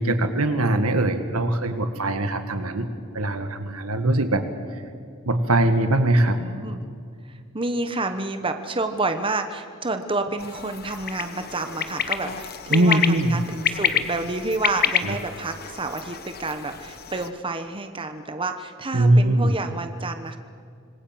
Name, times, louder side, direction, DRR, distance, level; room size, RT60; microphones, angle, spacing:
voice 1, 0.0-2.9 3.1-4.4 5.3-6.4 12.7-13.3 15.0-15.2 18.9-19.6, right 1 dB, 80° right, 8 dB, 2.0 m, -21 dB
voice 2, 6.3-6.8 7.3-20.4, right 3 dB, 25° right, 7 dB, 1.1 m, -29 dB
sound 1, 10.4-17.3, left 7 dB, 45° left, 1.2 m, -28 dB
26.5 x 20.5 x 7.8 m, 2.2 s
head